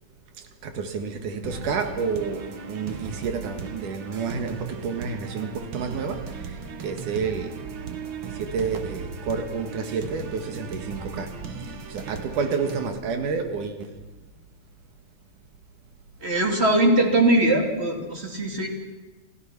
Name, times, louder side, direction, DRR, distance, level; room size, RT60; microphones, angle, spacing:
voice 1, 0.4-7.6 7.9-11.4 11.9-14.0, right 5 dB, 80° right, 7 dB, 3.3 m, -30 dB
sound 1, 1.4-12.9, right 5 dB, 50° right, 1.9 m, -37 dB
voice 2, 16.2-18.7, right 1 dB, 20° right, 3 dB, 2.7 m, -21 dB
28.5 x 15.5 x 6.0 m, 1.2 s
omnidirectional pair, 3.5 m